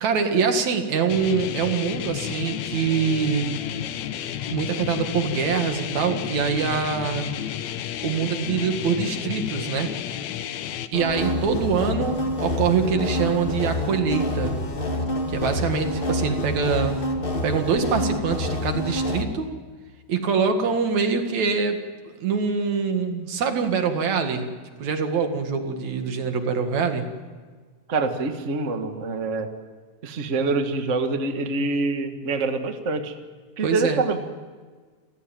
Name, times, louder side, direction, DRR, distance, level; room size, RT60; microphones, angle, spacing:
voice 1, 0.0-3.5 4.5-7.3 8.0-9.9 10.9-14.5 15.3-16.9 17.4-19.5 20.1-21.8 22.0-24.5 24.8-27.1 33.6-34.0, right 5 dB, 65° right, 6 dB, 3.0 m, -24 dB
sound 1, 1.1-10.9, left 10 dB, 70° left, 2.1 m, -31 dB
sound 2, 10.9-19.2, left 1 dB, 25° left, 1.5 m, -27 dB
voice 2, 27.9-29.5 30.0-33.1 33.6-34.2, right 3 dB, 35° right, 6 dB, 1.3 m, -25 dB
29.5 x 16.0 x 9.1 m, 1.5 s
omnidirectional pair, 3.7 m